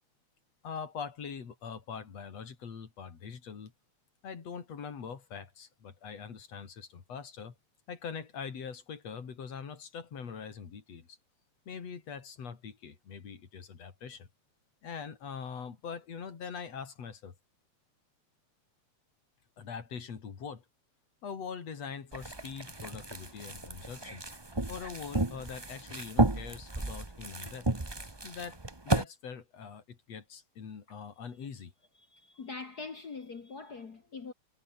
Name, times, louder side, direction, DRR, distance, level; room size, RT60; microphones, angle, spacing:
voice 1, 0.6-3.7 4.2-7.5 7.9-11.2 11.7-14.3 14.8-17.4 19.6-20.7 21.2-24.2 24.7-27.7 28.2-28.6 28.9-31.7, left 6 dB, 55° left, 4.0 m, -43 dB
sound 1, 22.1-29.0, right 2 dB, 15° right, 0.8 m, -33 dB
voice 2, 32.0-34.3, left 4 dB, 40° left, 1.7 m, -43 dB
omnidirectional pair, 3.5 m